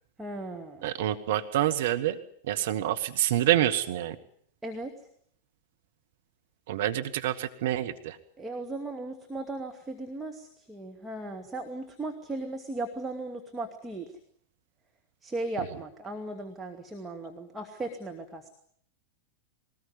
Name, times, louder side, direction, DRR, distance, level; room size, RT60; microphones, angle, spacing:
voice 1, 0.2-0.9 4.6-5.0 8.4-14.2 15.2-18.5, right 2 dB, 10° right, 2 dB, 2.3 m, -37 dB
voice 2, 0.8-2.2 2.5-4.2 6.7-8.2, right 13 dB, 55° right, 7 dB, 1.3 m, -27 dB
22.0 x 19.0 x 9.7 m, 0.64 s
figure-of-eight pair, 90°, 0 cm